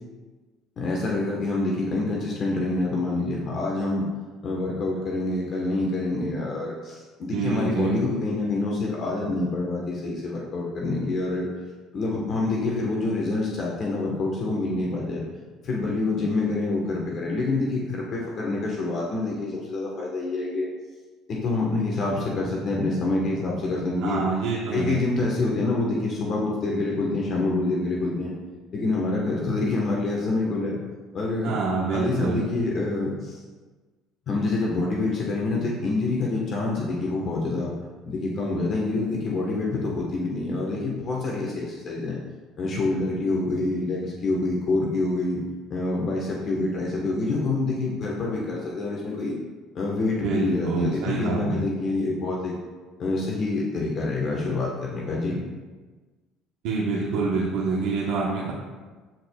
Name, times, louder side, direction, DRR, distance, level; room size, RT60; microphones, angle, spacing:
voice 1, 0.8-4.0 4.4-11.5 11.9-15.3 15.6-20.7 21.3-24.2 24.7-28.3 28.7-30.8 31.1-31.5 31.9-33.4 34.3-37.7 38.1-42.2 42.6-45.4 45.7-49.4 49.7-52.5 53.0-55.4, left 2 dB, 50° left, -2 dB, 1.2 m, -26 dB
voice 2, 7.3-7.9 24.0-25.0 31.4-32.5 50.2-51.6 56.6-58.5, right 4 dB, 80° right, -5 dB, 1.0 m, -26 dB
11.5 x 4.6 x 2.3 m, 1.3 s
supercardioid pair, 95°, 0 cm